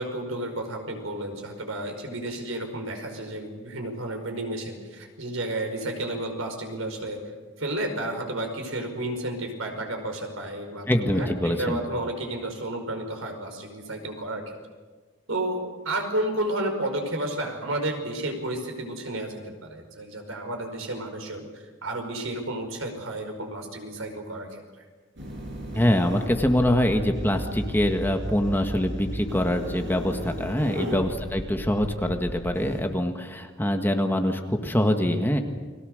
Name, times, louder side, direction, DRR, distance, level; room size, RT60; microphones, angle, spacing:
voice 1, 0.0-7.2 7.6-14.6 15.3-24.6 30.7-31.0, right 1 dB, 90° right, 4 dB, 5.3 m, -32 dB
voice 2, 10.9-11.8 25.7-35.4, left 1 dB, 10° left, 5 dB, 1.7 m, -24 dB
sound 1, 25.2-32.8, right 1 dB, 60° right, 7.0 m, -36 dB
30.0 x 22.0 x 6.6 m, 1.4 s
head